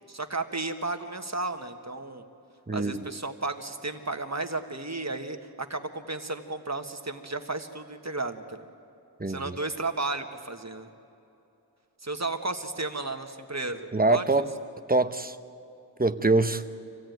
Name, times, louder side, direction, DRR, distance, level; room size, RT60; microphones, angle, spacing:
voice 1, 0.1-2.2 2.7-8.6 9.3-10.9 12.0-14.2, right 3 dB, 40° right, 6 dB, 1.4 m, -33 dB
voice 2, 2.7-3.1 9.2-9.6 13.9-14.5 14.9-15.4 16.0-16.6, right 2 dB, 20° right, 10 dB, 0.9 m, -24 dB
26.0 x 16.5 x 9.3 m, 2.8 s
wide cardioid pair, 45°, 40 cm